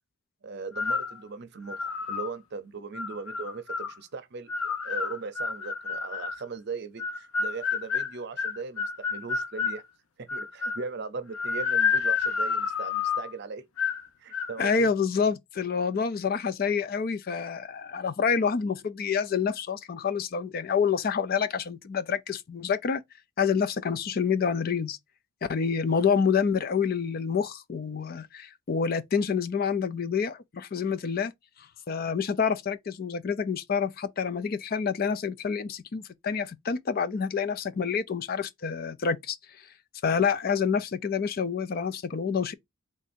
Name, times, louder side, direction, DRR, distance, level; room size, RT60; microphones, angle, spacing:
voice 1, 0.4-9.8 10.2-13.6 14.2-14.9, right 4 dB, 55° right, 0.6 m, -39 dB
sound 1, 0.7-1.2 1.7-2.3 2.9-3.9 4.5-6.4 7.0-9.8 10.3-10.9 11.3-13.3 13.8-14.1 14.3-14.8, left 5 dB, 85° left, 0.7 m, -29 dB
voice 2, 14.6-23.0 23.4-25.0 25.5-31.3 31.9-39.4 40.0-42.5, left 6 dB, 45° left, 0.4 m, -27 dB
3.6 x 2.6 x 4.2 m
head